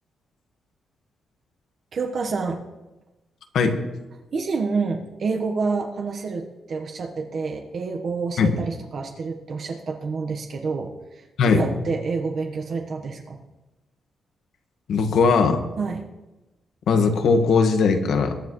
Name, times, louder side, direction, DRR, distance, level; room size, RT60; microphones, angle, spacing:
voice 1, 1.9-2.6 4.3-13.4 15.8-16.1, right 4 dB, 50° right, 3 dB, 1.2 m, -28 dB
voice 2, 14.9-15.6 16.9-18.4, left 5 dB, 75° left, 6 dB, 1.5 m, -19 dB
22.0 x 9.9 x 3.2 m, 1.1 s
cardioid pair, 115°, 0 cm